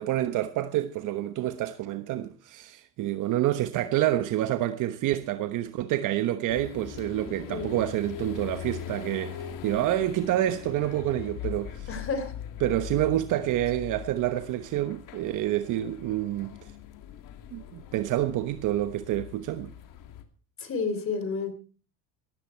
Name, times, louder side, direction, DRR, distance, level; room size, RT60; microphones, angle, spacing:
voice 1, 0.0-11.9 12.6-16.5 17.5-19.7, right 13 dB, 65° right, 1.1 m, -28 dB
sound 1, 6.5-20.2, left 9 dB, 70° left, 2.4 m, -41 dB
voice 2, 7.5-7.8 11.9-12.3 20.6-21.5, left 4 dB, 40° left, 3.6 m, -31 dB
17.0 x 15.0 x 4.5 m
cardioid pair, 105°, 34 cm